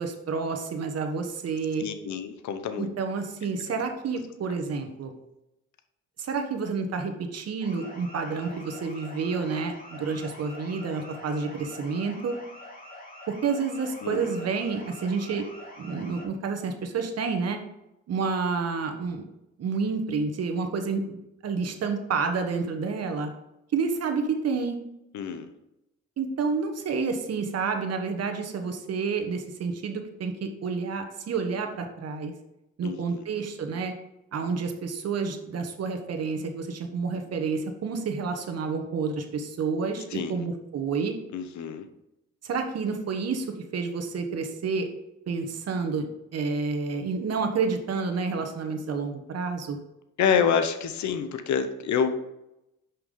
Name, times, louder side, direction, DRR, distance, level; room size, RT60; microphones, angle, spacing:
voice 1, 0.0-1.9 2.8-5.1 6.2-12.4 13.3-15.5 15.8-17.6 18.1-19.2 19.6-21.2 21.4-23.3 23.7-24.8 26.2-32.3 32.8-33.9 34.3-41.1 42.4-43.5 43.7-44.9 45.3-49.8, right 5 dB, 55° right, 5 dB, 1.2 m, -29 dB
voice 2, 1.8-2.9 14.0-14.3 25.1-25.5 32.8-33.2 40.1-40.5 41.3-41.9 50.2-52.1, left 7 dB, 70° left, 9 dB, 0.9 m, -27 dB
sound 1, 7.6-16.3, left 1 dB, 30° left, 2.6 m, -45 dB
5.8 x 5.4 x 5.1 m, 0.89 s
cardioid pair, 90°, 30 cm